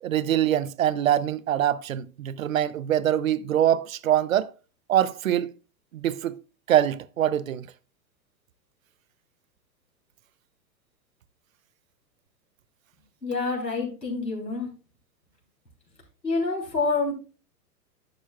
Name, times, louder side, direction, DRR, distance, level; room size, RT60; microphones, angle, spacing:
voice 1, 0.0-4.5 4.9-5.5 5.9-6.4 6.7-7.7, right 11 dB, 55° right, 0.7 m, -24 dB
voice 2, 13.2-14.7 16.2-17.1, left 3 dB, 85° left, 3.4 m, -27 dB
11.5 x 7.2 x 2.3 m
figure-of-eight pair, 105°, 49 cm